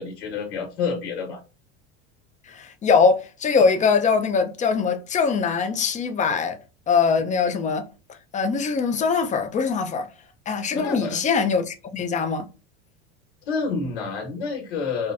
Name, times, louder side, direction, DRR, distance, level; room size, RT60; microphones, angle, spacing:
voice 1, 0.0-1.4 10.7-11.2 13.4-15.1, left 5 dB, 90° left, 1.3 m, -28 dB
voice 2, 2.5-6.6 6.9-7.8 8.3-10.1 10.5-12.4, left 5 dB, 20° left, 0.6 m, -22 dB
5.0 x 2.2 x 2.5 m
supercardioid pair, 120°, 32 cm